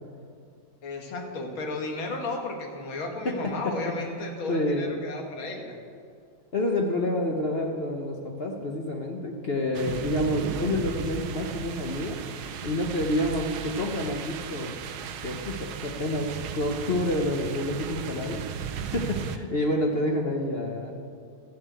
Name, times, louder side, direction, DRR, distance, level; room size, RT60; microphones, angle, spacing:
voice 1, 0.8-5.8, left 2 dB, 75° left, 2 dB, 2.3 m, -34 dB
voice 2, 3.2-3.9 4.5-5.0 6.5-12.2 12.6-14.7 15.2-18.6 18.9-20.9, left 1 dB, 50° left, 1 dB, 0.7 m, -28 dB
sound 1, 9.7-19.4, right 7 dB, 70° right, 0.9 m, -35 dB
12.5 x 7.3 x 8.3 m, 2.2 s
omnidirectional pair, 2.3 m